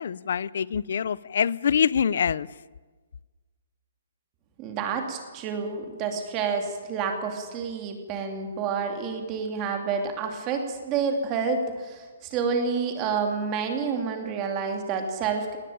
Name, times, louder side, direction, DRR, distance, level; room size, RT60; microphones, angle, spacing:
voice 1, 0.0-2.5, left 7 dB, 50° left, 21 dB, 0.6 m, -25 dB
voice 2, 4.6-15.6, right 5 dB, 15° right, 4 dB, 2.5 m, -29 dB
19.5 x 18.5 x 8.9 m, 1.3 s
hypercardioid pair, 180°, 0 cm